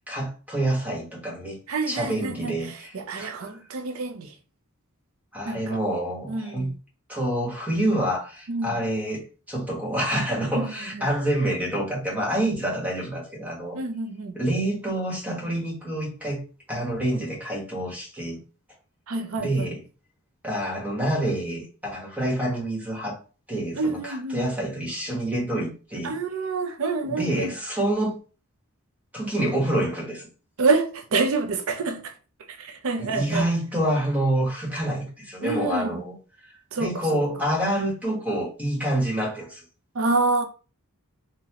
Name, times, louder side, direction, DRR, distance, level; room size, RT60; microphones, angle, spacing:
voice 1, 0.0-1.6 1.9-3.5 5.3-6.7 7.1-13.8 14.3-16.4 16.7-18.4 19.4-19.8 20.4-23.2 23.5-26.1 27.1-28.2 29.1-30.3 33.0-36.2 36.8-39.6, right 1 dB, 5° right, 1.1 m, -27 dB
voice 2, 1.7-2.6 2.9-4.3 5.5-5.8 6.3-6.7 8.5-8.7 10.5-10.7 13.7-14.3 19.1-19.7 23.8-24.5 26.0-27.5 30.6-32.1 32.6-33.5 35.4-36.0 36.7-37.2 39.9-40.4, right 3 dB, 65° right, 0.6 m, -27 dB
3.9 x 2.1 x 2.8 m
head